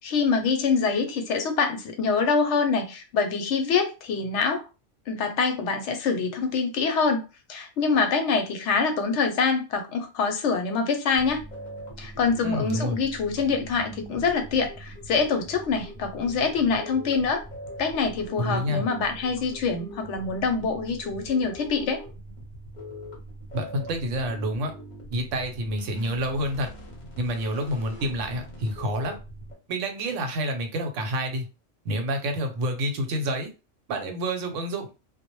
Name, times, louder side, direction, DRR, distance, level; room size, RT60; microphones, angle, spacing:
voice 1, 0.0-4.7 5.1-7.2 7.5-11.4 12.0-17.4 17.8-22.0, left 5 dB, 70° left, 0.9 m, -25 dB
sound 1, 11.1-29.5, equal, 40° left, 0.8 m, -42 dB
voice 2, 12.4-13.0 18.4-18.9 23.5-24.7 25.1-26.7 27.2-29.2 29.7-31.5 31.8-33.5 33.9-34.9, equal, 85° right, 1.0 m, -28 dB
2.2 x 2.0 x 2.9 m
omnidirectional pair, 1.3 m